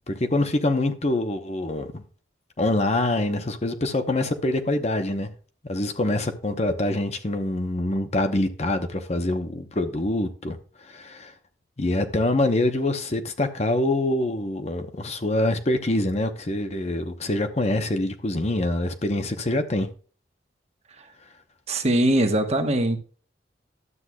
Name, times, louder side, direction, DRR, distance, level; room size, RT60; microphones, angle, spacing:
voice 1, 0.1-2.0 2.6-5.3 5.6-11.3 11.8-19.9, left 1 dB, 35° left, 0.9 m, -25 dB
voice 2, 21.7-23.0, right 1 dB, 35° right, 1.3 m, -21 dB
12.5 x 7.9 x 2.3 m
head